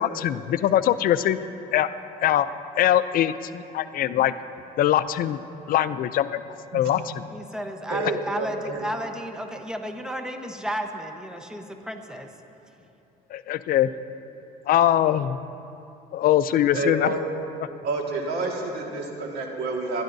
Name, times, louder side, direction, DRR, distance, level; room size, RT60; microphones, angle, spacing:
voice 1, 0.0-1.4 1.7-1.9 2.2-2.5 2.8-4.3 4.8-5.4 5.7-6.4 6.7-7.0 13.3-13.9 14.7-15.4 16.1-17.1, left 11 dB, 60° left, 13 dB, 0.4 m, -22 dB
voice 2, 7.3-12.3, equal, 5° right, 4 dB, 1.0 m, -33 dB
voice 3, 7.9-8.9 16.7-17.2 17.8-20.0, right 3 dB, 75° right, 0 dB, 1.8 m, -29 dB
23.0 x 11.0 x 2.7 m, 2.8 s
cardioid pair, 110°, 17 cm